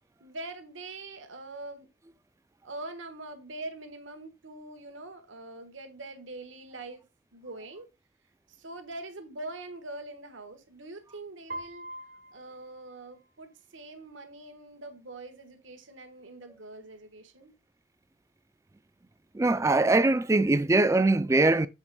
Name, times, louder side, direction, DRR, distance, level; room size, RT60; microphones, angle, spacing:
voice 1, 0.2-1.9 2.6-7.0 7.3-7.9 8.6-11.9 12.3-17.5, right 2 dB, 85° right, 1.3 m, -43 dB
Piano, 11.5-13.5, right 1 dB, 45° right, 0.6 m, -43 dB
voice 2, 19.3-21.7, right 2 dB, 15° right, 0.3 m, -22 dB
7.4 x 3.5 x 4.6 m
head